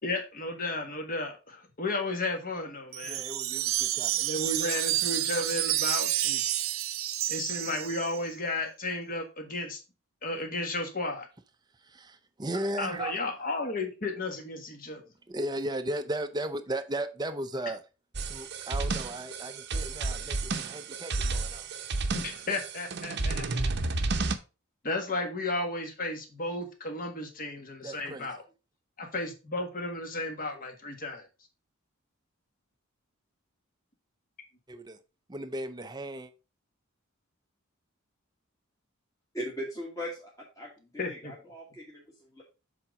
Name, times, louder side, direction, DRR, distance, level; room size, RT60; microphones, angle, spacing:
voice 1, 0.0-3.2 4.2-6.4 7.3-9.8 10.2-11.3 12.8-15.0 22.1-23.6 24.8-28.4 29.0-31.3 41.0-41.3, left 2 dB, 40° left, 1.6 m, -33 dB
Wind chime, 2.9-8.3, right 13 dB, 80° right, 0.7 m, -30 dB
voice 2, 3.0-4.1 11.8-13.2 15.3-17.8 18.2-21.7 27.8-28.3 34.7-35.0 35.3-36.3, right 1 dB, 20° right, 0.6 m, -36 dB
sound 1, 18.1-24.4, right 3 dB, 55° right, 0.8 m, -32 dB
voice 3, 39.3-40.3 40.5-42.4, equal, 15° left, 1.5 m, -39 dB
7.4 x 4.0 x 4.8 m
head